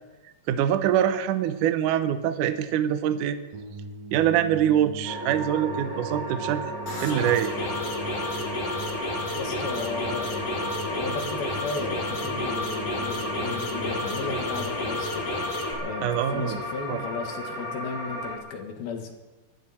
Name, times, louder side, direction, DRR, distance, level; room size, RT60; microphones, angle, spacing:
voice 1, 0.5-3.4 4.1-6.7 7.0-7.5 16.0-16.6 16.9-17.0, right 10 dB, 80° right, 10 dB, 1.8 m, -24 dB
sound 1, 3.5-16.6, right 1 dB, 45° right, 3.5 m, -41 dB
sound 2, 5.0-18.4, equal, 5° right, 2.3 m, -35 dB
sound 3, 6.9-15.7, left 2 dB, 40° left, 3.5 m, -31 dB
voice 2, 9.4-15.3 15.8-19.1, left 4 dB, 65° left, 3 dB, 3.5 m, -35 dB
24.0 x 12.0 x 4.3 m, 1.2 s
omnidirectional pair, 4.7 m